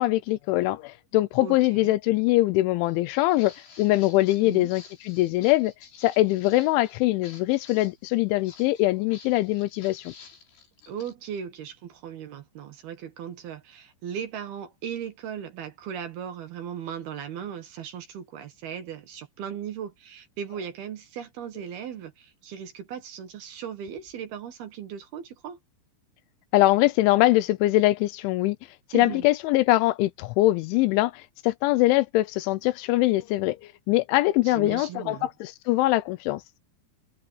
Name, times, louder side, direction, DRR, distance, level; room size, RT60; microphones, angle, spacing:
voice 1, 0.0-5.7 6.0-10.1 26.5-28.6 28.9-33.6 33.9-36.4, left 17 dB, 80° left, 3.0 m, -23 dB
voice 2, 1.4-1.9 4.4-4.7 10.9-25.6 28.9-29.2 34.4-35.3, right 8 dB, 60° right, 3.2 m, -37 dB
Walk footsteps, 2.8-11.1, left 6 dB, 65° left, 7.8 m, -50 dB
omnidirectional pair, 5.6 m